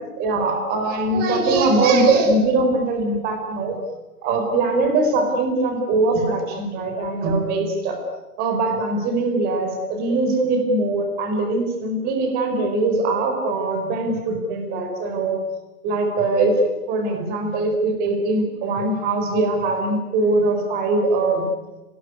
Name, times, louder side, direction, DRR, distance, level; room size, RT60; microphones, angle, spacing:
voice 1, 0.2-3.8 4.2-8.0 8.4-15.4 15.8-16.6 16.9-21.5, right 2 dB, 20° right, 4 dB, 4.3 m, -21 dB
30.0 x 20.5 x 9.7 m, 1.1 s
hypercardioid pair, 155°, 48 cm